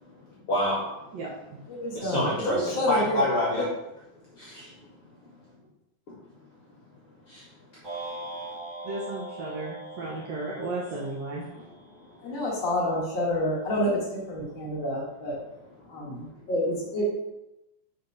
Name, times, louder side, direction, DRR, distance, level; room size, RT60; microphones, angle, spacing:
voice 1, 0.5-1.1 1.8-3.7 4.2-5.0 7.2-7.4 10.8-11.1 11.5-12.4 14.4-14.8 15.8-16.2, left 1 dB, 60° left, -5 dB, 1.5 m, -30 dB
voice 2, 1.1-1.6 8.8-11.5, right 3 dB, 70° right, -5 dB, 1.7 m, -34 dB
voice 3, 1.6-3.3 12.2-13.9 14.3-15.4 15.9-17.1, left 1 dB, 90° left, -5 dB, 1.0 m, -28 dB
sound 1, 7.8-12.2, right 2 dB, 15° right, 0.8 m, -40 dB
5.4 x 4.4 x 5.2 m, 0.93 s
omnidirectional pair, 4.2 m